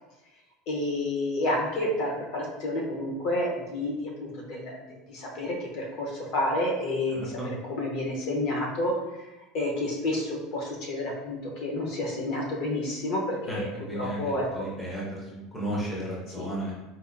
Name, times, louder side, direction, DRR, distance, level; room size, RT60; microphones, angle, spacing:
voice 1, 0.7-4.8 5.1-8.9 9.5-13.7 13.9-14.7 16.4-16.5, left 1 dB, 50° left, -2 dB, 0.8 m, -30 dB
voice 2, 7.1-7.5 13.5-16.7, right 1 dB, 5° left, -6 dB, 0.6 m, -34 dB
4.2 x 2.4 x 2.5 m, 1.0 s
cardioid pair, 180°, 0 cm